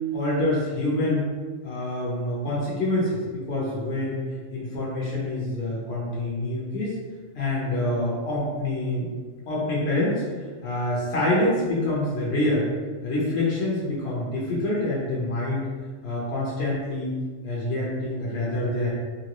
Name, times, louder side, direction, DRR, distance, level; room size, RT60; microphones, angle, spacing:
voice 1, 0.1-1.3 1.6-4.2 4.5-7.0 7.3-9.1 9.5-10.2 10.6-12.7 13.0-15.7 16.0-17.2 17.4-18.9, left 1 dB, 55° left, -6 dB, 1.0 m, -26 dB
3.3 x 2.7 x 2.9 m, 1.5 s
omnidirectional pair, 1.3 m